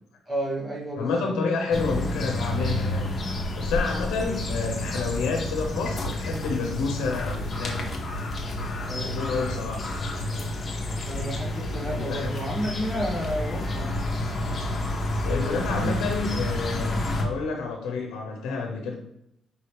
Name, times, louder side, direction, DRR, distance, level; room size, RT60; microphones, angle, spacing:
voice 1, 0.3-1.3 8.8-9.1 11.0-13.9 15.2-15.9, equal, 30° right, -5 dB, 1.2 m, -31 dB
voice 2, 0.9-3.1 3.6-7.9 9.0-9.9 11.8-12.3 15.2-18.9, left 4 dB, 85° left, 2 dB, 0.7 m, -29 dB
sound 1, 1.7-17.2, left 1 dB, 40° left, 0.9 m, -29 dB
4.8 x 2.8 x 3.3 m, 0.78 s
cardioid pair, 90°, 0 cm